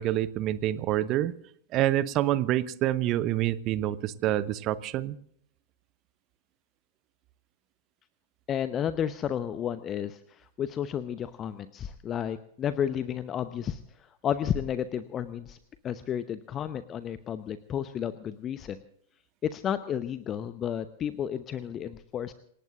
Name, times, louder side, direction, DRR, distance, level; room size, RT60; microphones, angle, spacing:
voice 1, 0.0-1.3 1.7-5.2, right 13 dB, 35° right, 16 dB, 0.9 m, -27 dB
voice 2, 8.5-15.6 15.8-18.8 19.4-22.3, left 9 dB, 25° left, 12 dB, 0.9 m, -32 dB
28.5 x 18.0 x 2.6 m, 0.67 s
figure-of-eight pair, 95°, 0 cm